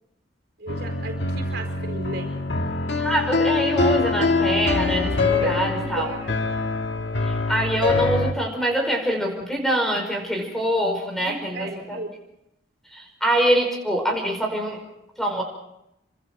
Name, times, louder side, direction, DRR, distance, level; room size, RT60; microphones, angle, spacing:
voice 1, 0.6-2.4 5.4-6.4 11.2-12.1, right 2 dB, 65° right, 4 dB, 4.8 m, -34 dB
sound 1, 0.7-8.3, left 3 dB, 70° left, 1.8 m, -24 dB
voice 2, 3.0-6.1 7.2-12.0 12.9-14.8 15.2-15.4, right 1 dB, ahead, 2 dB, 5.4 m, -24 dB
28.5 x 25.5 x 4.6 m, 0.84 s
head